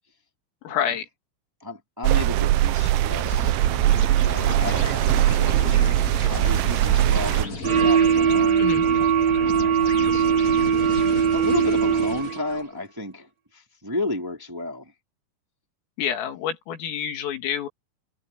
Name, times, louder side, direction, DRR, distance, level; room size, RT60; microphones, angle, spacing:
voice 1, 0.7-1.1 8.6-8.9 16.0-17.7, left 9 dB, 80° left, 5.4 m, -28 dB
voice 2, 1.6-3.5 4.1-5.9 6.3-8.7 9.4-10.6 11.3-14.9, left 2 dB, 5° right, 2.9 m, -33 dB
sound 1, 2.0-7.5, right 14 dB, 80° right, 2.9 m, -21 dB
sound 2, 3.2-12.7, left 3 dB, 35° left, 5.6 m, -34 dB
sound 3, 7.6-12.5, right 7 dB, 50° right, 3.5 m, -20 dB
omnidirectional pair, 5.9 m